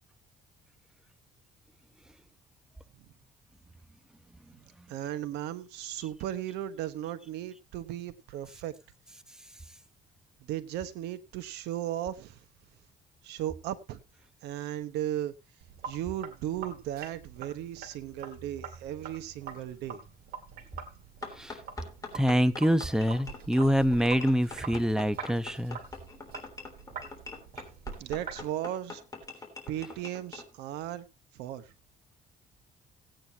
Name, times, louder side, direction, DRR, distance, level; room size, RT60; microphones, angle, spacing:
voice 1, 4.9-8.7 10.5-12.4 13.2-14.0 14.4-15.3 15.8-20.0 28.0-29.0 29.7-31.0 31.3-31.7, right 12 dB, 85° right, 1.2 m, -36 dB
Sink (filling or washing), 15.6-28.5, right 6 dB, 65° right, 2.4 m, -45 dB
sound 1, 21.2-30.5, left 4 dB, 20° left, 3.4 m, -44 dB
voice 2, 22.1-25.8, equal, 5° right, 0.9 m, -25 dB
17.0 x 9.1 x 2.9 m
cardioid pair, 110°, 17 cm